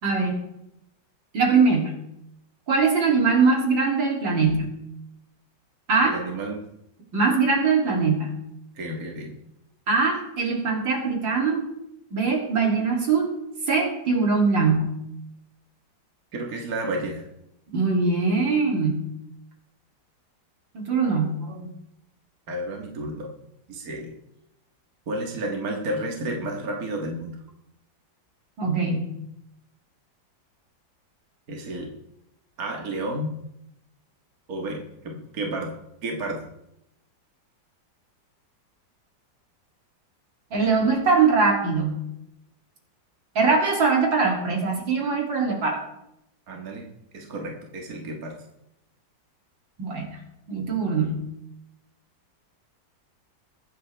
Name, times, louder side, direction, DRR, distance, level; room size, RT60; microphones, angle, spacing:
voice 1, 0.0-0.4 1.3-1.9 2.7-4.7 5.9-6.1 7.1-8.3 9.9-11.6 12.1-13.3 13.7-14.9 17.7-19.0 20.7-21.7 28.6-29.1 40.5-41.9 43.4-45.8 49.8-50.1 50.5-51.2, right 4 dB, 80° right, 0 dB, 3.7 m, -22 dB
voice 2, 6.0-6.6 8.8-9.3 16.3-17.3 22.5-23.3 23.7-24.1 25.1-27.4 31.5-31.9 32.6-33.3 34.5-35.7 36.0-36.5 46.5-46.8 47.1-48.4, right 1 dB, 50° right, 1 dB, 2.1 m, -31 dB
23.0 x 9.4 x 3.5 m, 0.83 s
omnidirectional pair, 2.0 m